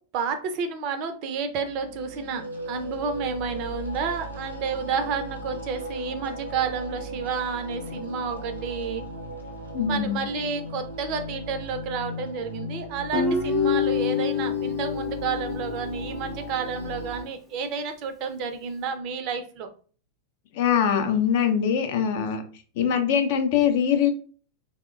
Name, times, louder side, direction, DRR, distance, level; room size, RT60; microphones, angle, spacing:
voice 1, 0.1-9.0 9.9-19.7, right 5 dB, 40° right, 8 dB, 0.4 m, -30 dB
sound 1, 1.5-17.2, right 1 dB, 85° right, 0.7 m, -37 dB
voice 2, 9.7-10.2 20.5-22.4 22.8-24.1, left 8 dB, 50° left, 7 dB, 0.4 m, -22 dB
Guitar, 13.1-16.4, left 6 dB, 5° left, 0.6 m, -27 dB
2.9 x 2.0 x 2.3 m, 0.40 s
figure-of-eight pair, 90°, 0 cm